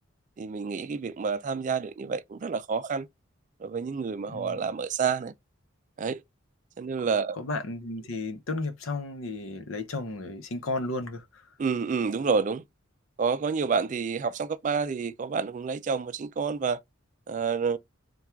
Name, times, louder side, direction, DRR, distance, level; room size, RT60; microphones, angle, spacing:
voice 1, 0.4-3.1 3.6-5.3 6.0-6.2 6.8-7.4 11.6-12.6 13.2-16.8 17.3-17.8, right 5 dB, 40° right, 0.3 m, -29 dB
voice 2, 4.3-4.6 7.4-11.2, left 2 dB, 85° left, 0.8 m, -33 dB
3.5 x 2.3 x 4.3 m
head